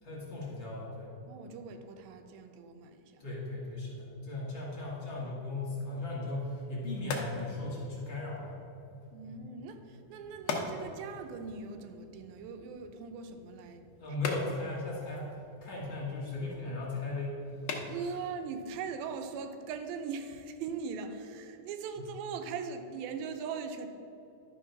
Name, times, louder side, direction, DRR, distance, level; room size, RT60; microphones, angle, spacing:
voice 1, 0.0-1.1 3.2-8.6 9.2-9.3 14.0-15.3 15.6-17.4 22.0-22.1, left 2 dB, 45° left, -6 dB, 2.0 m, -37 dB
voice 2, 1.2-3.2 9.1-14.2 17.9-23.9, right 5 dB, 85° right, 7 dB, 2.5 m, -40 dB
sound 1, 6.5-20.0, left 4 dB, 80° left, 1.4 m, -43 dB
11.0 x 4.4 x 5.8 m, 2.8 s
omnidirectional pair, 4.1 m